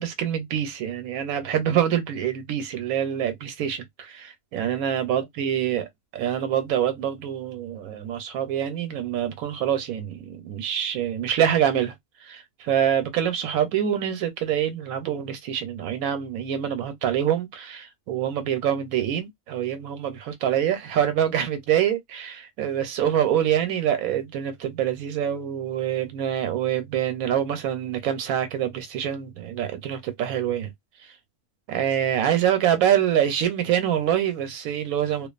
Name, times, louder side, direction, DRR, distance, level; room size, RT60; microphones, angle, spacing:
voice 1, 0.0-5.8 6.1-11.9 12.2-30.7 31.7-35.3, right 10 dB, 90° right, 1.1 m, -25 dB
2.5 x 2.3 x 2.4 m
omnidirectional pair, 1.4 m